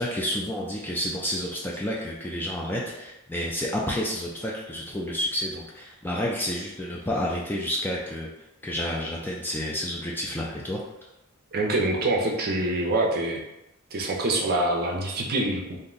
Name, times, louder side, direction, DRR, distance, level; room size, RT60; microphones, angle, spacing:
voice 1, 0.0-8.3 8.6-10.8, left 1 dB, 10° left, -4 dB, 0.3 m, -30 dB
voice 2, 11.5-13.4 13.9-15.8, right 2 dB, 45° right, 0 dB, 0.5 m, -25 dB
2.6 x 2.1 x 3.7 m, 0.89 s
head